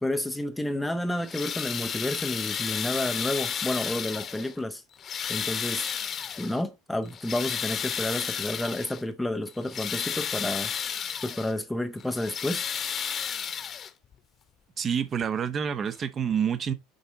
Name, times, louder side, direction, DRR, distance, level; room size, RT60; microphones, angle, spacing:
voice 1, 0.0-4.8 5.3-5.9 6.4-10.7 11.2-12.7, left 1 dB, 5° left, 0.6 m, -30 dB
sound 1, 1.1-4.6 5.0-6.6 7.1-9.0 9.5-11.5 12.0-14.1 15.2-15.3 15.9-16.0, left 8 dB, 30° left, 1.0 m, -32 dB
voice 2, 14.8-16.7, right 7 dB, 30° right, 0.8 m, -28 dB
6.7 x 4.4 x 3.9 m
figure-of-eight pair, 75°, 0 cm